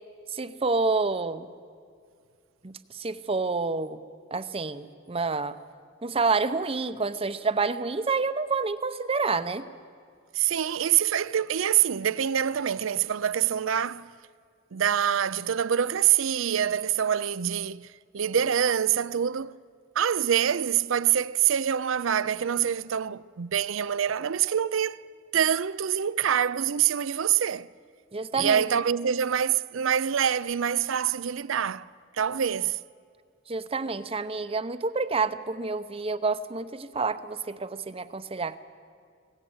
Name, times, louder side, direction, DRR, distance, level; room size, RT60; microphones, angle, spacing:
voice 1, 0.3-1.5 2.6-4.0 4.3-5.6 6.0-9.7 28.1-28.6 33.5-38.6, right 4 dB, 25° right, 0.7 m, -28 dB
voice 2, 10.3-14.1 14.7-19.5 20.0-25.0 25.3-27.7 28.4-31.9 32.2-32.8, right 9 dB, 65° right, 0.5 m, -25 dB
24.5 x 18.0 x 8.0 m
head